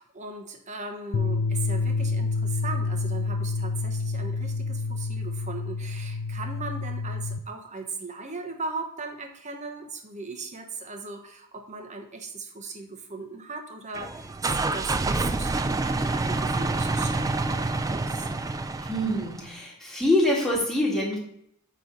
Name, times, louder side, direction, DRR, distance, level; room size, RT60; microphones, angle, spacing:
voice 1, 0.0-15.6 16.0-18.3, right 3 dB, 35° right, 4 dB, 1.0 m, -38 dB
sound 1, 1.1-7.4, left 3 dB, 85° left, 0.5 m, -28 dB
sound 2, 13.9-19.5, right 3 dB, 15° right, 0.3 m, -27 dB
voice 2, 18.9-21.2, left 1 dB, ahead, -4 dB, 1.9 m, -25 dB
9.0 x 3.3 x 5.4 m, 0.70 s
head